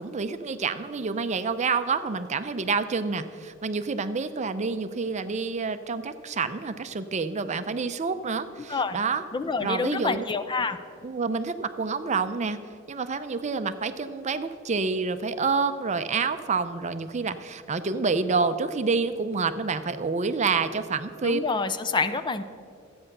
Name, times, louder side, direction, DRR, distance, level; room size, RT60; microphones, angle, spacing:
voice 1, 0.0-9.2 9.6-10.2 11.0-12.6 12.9-21.4, right 4 dB, 35° right, 11 dB, 0.5 m, -28 dB
voice 2, 8.7-9.0 9.3-10.8 21.2-22.4, left 4 dB, 25° left, 10 dB, 0.5 m, -27 dB
13.0 x 8.6 x 6.6 m, 2.3 s
head